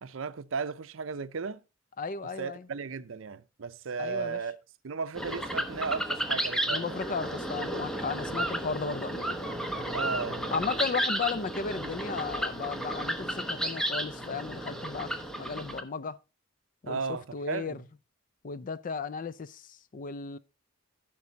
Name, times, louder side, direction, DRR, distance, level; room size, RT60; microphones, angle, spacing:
voice 1, 0.0-1.6 2.4-4.6 4.8-7.0 9.9-10.5 16.9-17.8, right 5 dB, 70° right, 0.6 m, -35 dB
voice 2, 2.0-2.7 4.0-4.4 6.7-9.4 10.5-16.2 16.8-17.8 18.4-20.4, left 5 dB, 40° left, 0.4 m, -35 dB
sound 1, 5.2-15.8, right 1 dB, 5° left, 1.0 m, -33 dB
14.0 x 6.0 x 4.0 m
head